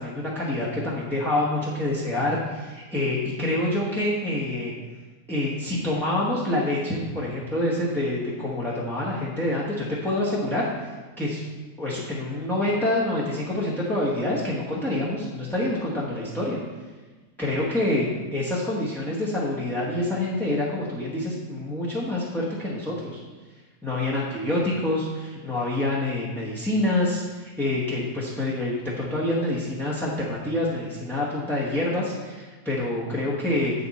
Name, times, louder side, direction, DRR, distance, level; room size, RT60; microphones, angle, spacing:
voice 1, 0.0-4.7 5.3-10.9 11.2-11.5 11.8-16.6 17.4-23.2 23.8-33.7, left 1 dB, ahead, -8 dB, 1.1 m, -27 dB
7.8 x 7.0 x 4.2 m, 1.3 s
omnidirectional pair, 1.5 m